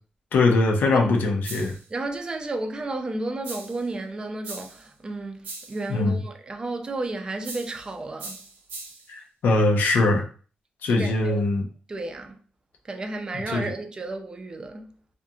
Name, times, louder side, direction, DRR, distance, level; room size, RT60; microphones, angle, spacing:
voice 1, 0.3-1.8 5.9-6.2 9.1-10.2 10.8-11.7 13.5-13.7, left 2 dB, 90° left, 0.5 m, -21 dB
sound 1, 1.4-1.9 3.4-3.9 4.4-4.9 5.4-5.9 7.4-7.9 8.2-9.1, right 3 dB, 80° right, 0.6 m, -39 dB
voice 2, 1.9-8.4 10.9-11.4 11.9-12.4 12.9-14.9, right 2 dB, 30° right, 0.4 m, -32 dB
2.5 x 2.3 x 2.7 m
wide cardioid pair, 125°, 3 cm